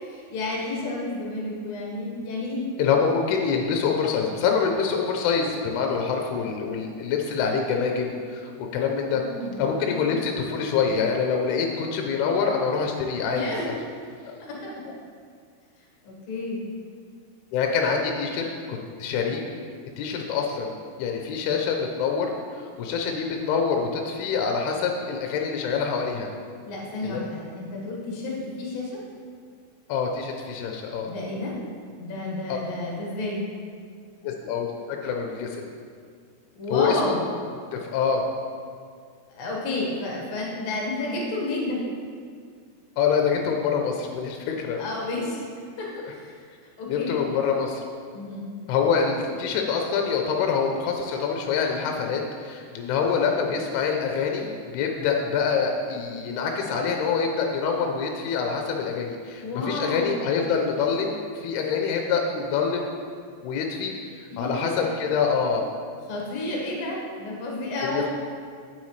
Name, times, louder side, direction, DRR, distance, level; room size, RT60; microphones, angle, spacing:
voice 1, 0.0-2.7 9.1-10.1 13.2-13.7 14.4-14.7 16.0-16.6 26.6-29.0 31.1-31.6 32.0-33.4 36.6-37.2 39.3-41.8 44.8-45.5 45.8-46.4 46.8-47.2 48.1-48.5 59.4-60.2 64.3-64.9 66.1-68.1, left 2 dB, 60° left, -3 dB, 1.8 m, -31 dB
voice 2, 2.8-9.2 9.6-13.8 14.2-14.3 17.5-19.4 20.0-26.3 27.0-27.2 29.9-31.1 32.5-32.6 34.2-35.6 36.7-37.1 37.7-38.2 43.0-44.8 46.1-46.2 46.9-47.8 48.7-62.9 63.4-63.9 64.4-65.6 67.9-68.1, left 6 dB, 80° left, 2 dB, 2.4 m, -25 dB
9.7 x 7.2 x 3.2 m, 2.1 s
omnidirectional pair, 5.0 m